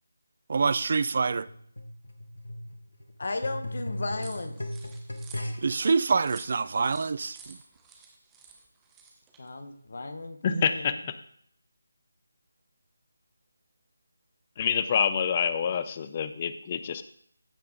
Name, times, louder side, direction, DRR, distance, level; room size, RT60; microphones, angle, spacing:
voice 1, 0.5-1.5 5.6-7.6 10.5-10.7, right 4 dB, 45° right, 0.4 m, -26 dB
sound 1, 1.5-5.9 6.6-6.7, left 1 dB, 75° left, 1.7 m, -37 dB
voice 2, 3.2-4.7 9.4-10.9, left 2 dB, 55° left, 1.2 m, -35 dB
sound 2, 4.2-9.5, right 5 dB, 10° right, 1.1 m, -51 dB
voice 3, 10.4-11.1 14.6-17.0, left 7 dB, 25° left, 0.6 m, -27 dB
15.5 x 5.6 x 3.9 m
figure-of-eight pair, 160°, 0 cm